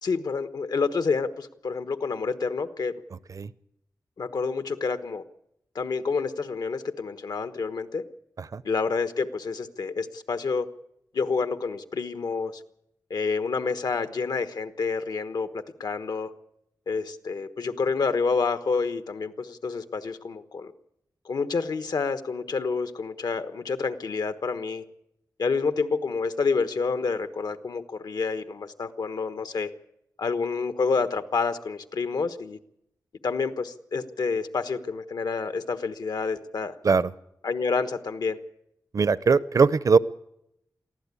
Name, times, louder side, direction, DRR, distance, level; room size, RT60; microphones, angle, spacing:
voice 1, 0.0-2.9 4.2-5.2 5.7-8.0 8.6-10.7 11.1-12.6 13.1-15.5 15.8-16.3 16.9-20.7 21.2-24.8 25.4-29.7 30.2-32.6 33.2-36.7 37.4-38.4, left 4 dB, 75° left, 11 dB, 1.2 m, -28 dB
voice 2, 38.9-40.0, right 5 dB, 55° right, 17 dB, 0.7 m, -21 dB
23.0 x 15.0 x 8.4 m, 0.80 s
wide cardioid pair, 115°, 7 cm